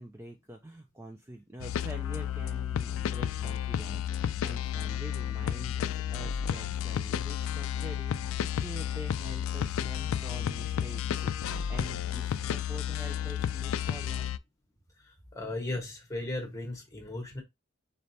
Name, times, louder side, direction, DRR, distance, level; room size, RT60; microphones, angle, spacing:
voice 1, 0.0-14.3, right 1 dB, 10° right, 0.4 m, -45 dB
sound 1, 1.6-14.4, left 9 dB, 80° left, 0.3 m, -32 dB
voice 2, 15.0-17.4, left 2 dB, 15° left, 1.2 m, -36 dB
4.1 x 3.3 x 2.7 m
head